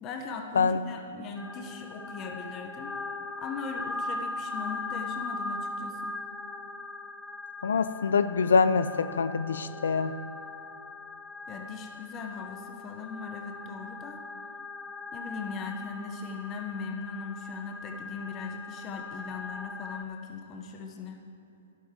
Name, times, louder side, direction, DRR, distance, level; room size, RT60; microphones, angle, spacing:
voice 1, 0.0-2.9 3.4-6.2 11.5-14.2 15.1-21.2, left 4 dB, 30° left, 3 dB, 1.0 m, -39 dB
sound 1, 1.4-20.0, left 3 dB, 10° left, 0.5 m, -40 dB
voice 2, 7.6-10.1, left 5 dB, 80° left, 12 dB, 0.5 m, -25 dB
12.0 x 11.0 x 3.7 m, 2.7 s
hypercardioid pair, 135°, 0 cm